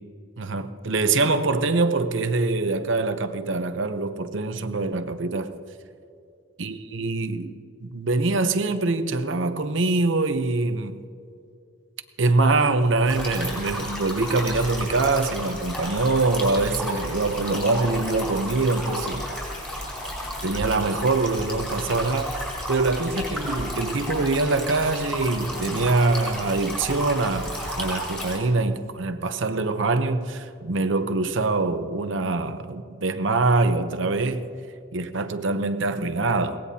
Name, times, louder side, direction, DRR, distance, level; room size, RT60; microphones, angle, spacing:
voice 1, 0.4-5.5 6.6-7.5 7.8-11.0 12.2-19.3 20.4-34.5 34.9-36.6, right 3 dB, 70° right, 0.8 m, -24 dB
sound 1, 13.1-28.4, equal, 5° left, 4.9 m, -32 dB
22.5 x 18.0 x 2.8 m
head